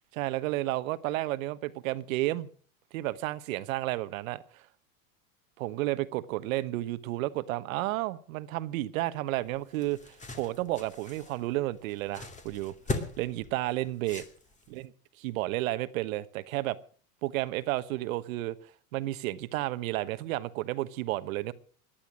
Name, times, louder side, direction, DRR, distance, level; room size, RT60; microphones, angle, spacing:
voice 1, 0.2-2.5 2.9-4.6 5.6-10.0 10.3-12.7 13.2-14.2 14.7-14.9 15.2-16.8 17.2-18.6 18.9-21.5, right 17 dB, 70° right, 1.3 m, -32 dB
sound 1, 9.4-14.8, left 2 dB, 15° left, 2.5 m, -40 dB
18.0 x 11.5 x 6.2 m
supercardioid pair, 130°, 42 cm